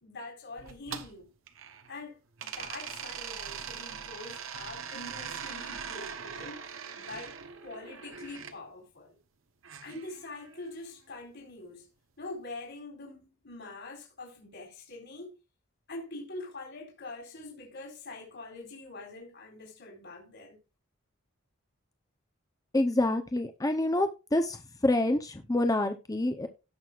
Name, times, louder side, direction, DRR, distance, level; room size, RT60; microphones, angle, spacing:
voice 1, 0.0-1.3 1.9-6.6 6.9-7.4 7.6-9.2 9.8-11.9 12.2-15.3 15.9-20.6, left 2 dB, 65° left, 3.7 m, -44 dB
sound 1, 0.6-2.0 2.4-8.6 9.6-10.8, right 7 dB, 70° right, 1.0 m, -41 dB
voice 2, 22.7-24.6 24.8-26.5, left 1 dB, 15° left, 0.7 m, -27 dB
17.5 x 6.2 x 2.5 m
head